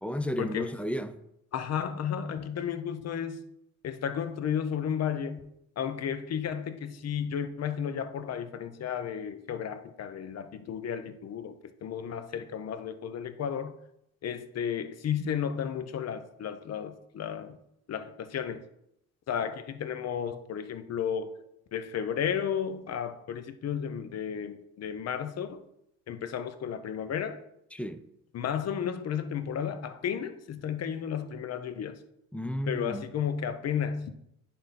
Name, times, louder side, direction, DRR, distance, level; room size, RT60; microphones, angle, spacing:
voice 1, 0.0-1.2 27.7-28.0 32.3-33.0, equal, 5° left, 0.6 m, -33 dB
voice 2, 1.5-3.4 3.8-5.5 5.8-13.7 14.2-17.6 17.9-18.6 19.3-21.3 21.7-25.6 26.1-27.4 28.3-32.0 32.7-34.1, left 8 dB, 55° left, 0.8 m, -33 dB
10.5 x 3.8 x 4.2 m
cardioid pair, 90°, 30 cm